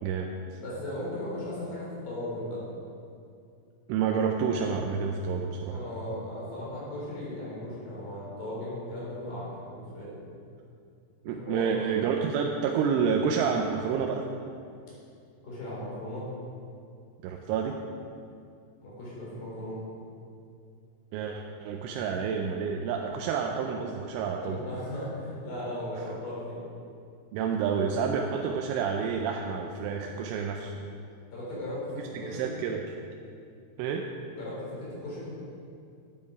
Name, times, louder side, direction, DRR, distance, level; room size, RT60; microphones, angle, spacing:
voice 1, 0.0-0.6 3.9-5.8 11.2-14.3 17.2-17.8 21.1-24.6 27.3-30.7 32.1-32.8 33.8-34.1, right 6 dB, 85° right, 2 dB, 2.9 m, -29 dB
voice 2, 0.6-2.6 5.7-10.2 11.3-11.8 15.4-16.2 18.8-19.9 24.4-26.6 31.3-32.5 34.3-35.3, left 1 dB, 45° left, -7 dB, 4.8 m, -37 dB
12.0 x 9.3 x 4.9 m, 2.4 s
omnidirectional pair, 6.0 m